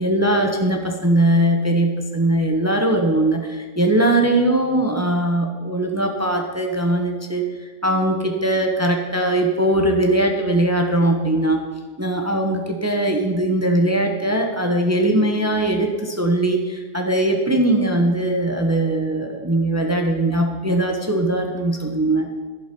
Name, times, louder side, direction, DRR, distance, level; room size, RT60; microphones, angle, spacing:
voice 1, 0.0-7.4 7.8-11.6 12.0-22.3, right 1 dB, 15° right, 3 dB, 1.0 m, -20 dB
11.5 x 11.0 x 5.3 m, 1.5 s
omnidirectional pair, 1.2 m